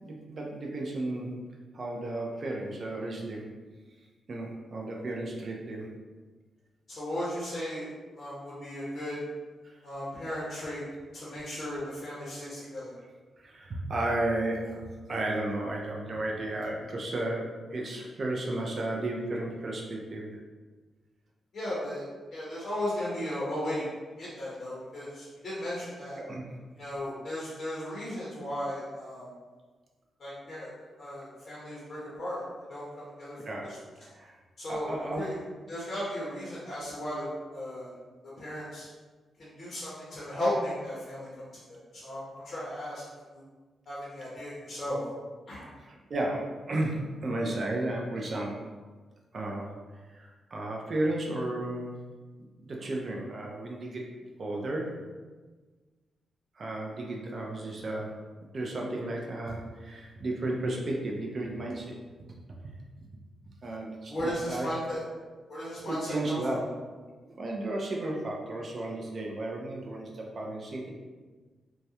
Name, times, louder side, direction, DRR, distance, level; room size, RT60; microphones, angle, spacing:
voice 1, 0.0-1.4 1.7-3.5 4.3-5.9 9.6-9.8 13.4-20.3 26.2-26.5 33.4-33.7 34.1-34.4 34.7-35.2 45.8-48.6 49.3-49.7 50.1-52.0 52.7-54.0 54.4-55.0 56.6-58.1 58.5-62.0 63.0-63.1 63.6-64.1 64.4-64.7 65.9-66.6 67.3-70.9, right 2 dB, 35° right, -1 dB, 0.3 m, -33 dB
voice 2, 6.9-7.9 8.1-9.2 9.8-10.8 11.1-13.0 21.5-22.0 22.3-23.8 24.2-26.2 26.8-29.3 30.2-30.7 31.0-32.4 32.7-33.4 33.6-34.1 34.6-35.4 35.7-37.9 38.4-38.9 39.4-43.0 43.3-43.4 43.9-45.0 45.5-45.7 64.1-65.1 65.5-66.6, left 1 dB, 40° left, -8 dB, 0.6 m, -36 dB
2.3 x 2.0 x 2.8 m, 1.4 s
wide cardioid pair, 175°, 0 cm